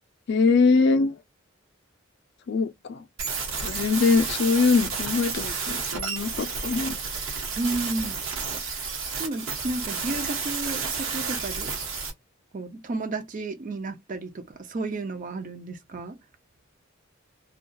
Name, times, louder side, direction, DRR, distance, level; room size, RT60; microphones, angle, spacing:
voice 1, 0.3-1.2 2.5-3.0 3.6-7.0, left 4 dB, 55° left, 0.3 m, -22 dB
sound 1, 3.2-12.1, right 5 dB, 80° right, 1.0 m, -31 dB
voice 2, 7.6-8.2 9.2-11.7 12.5-16.2, right 2 dB, 40° right, 0.5 m, -32 dB
2.6 x 2.2 x 2.2 m
head